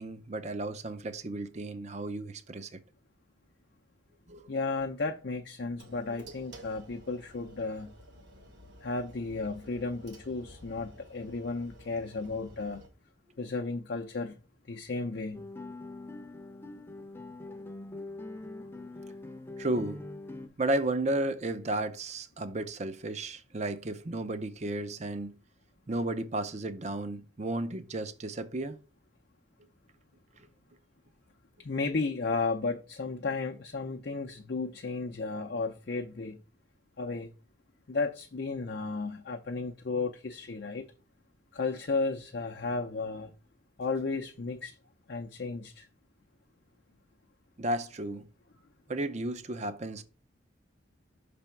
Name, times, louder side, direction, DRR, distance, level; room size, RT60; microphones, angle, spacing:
voice 1, 0.0-2.8 4.3-4.4 19.6-20.0 20.6-25.4 25.9-28.8 47.6-48.3 48.9-50.0, right 2 dB, 35° right, 0.6 m, -33 dB
voice 2, 4.5-7.9 8.8-12.8 13.4-14.4 14.7-15.4 31.6-36.4 37.0-37.3 37.9-40.9 41.5-43.3 43.8-44.8 45.1-45.9, left 3 dB, 60° left, 0.6 m, -34 dB
sound 1, 5.8-12.9, right 1 dB, 70° right, 1.5 m, -52 dB
Guitar, 15.3-20.5, left 2 dB, 10° left, 0.6 m, -43 dB
6.0 x 3.4 x 5.7 m
head